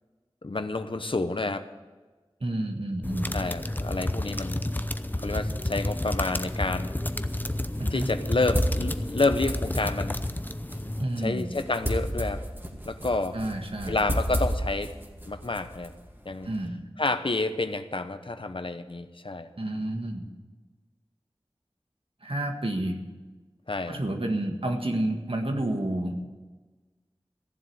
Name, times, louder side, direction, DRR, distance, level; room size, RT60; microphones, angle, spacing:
voice 1, 0.4-1.7 3.3-4.6 5.2-6.9 7.9-10.2 11.2-12.4 12.8-13.4 13.9-14.9 15.2-15.9 16.2-16.5 17.0-19.5 23.7-24.0, left 2 dB, 60° left, 9 dB, 0.9 m, -29 dB
voice 2, 2.4-3.4 7.8-8.1 11.0-11.5 13.3-14.0 16.4-16.8 19.6-20.3 22.2-23.0 23.9-26.1, right 1 dB, 65° right, 4 dB, 1.7 m, -30 dB
sound 1, 3.0-11.0, left 1 dB, 20° left, 0.6 m, -31 dB
sound 2, 6.9-16.7, equal, 20° right, 2.3 m, -34 dB
15.0 x 7.4 x 9.6 m, 1.3 s
wide cardioid pair, 40°, 10 cm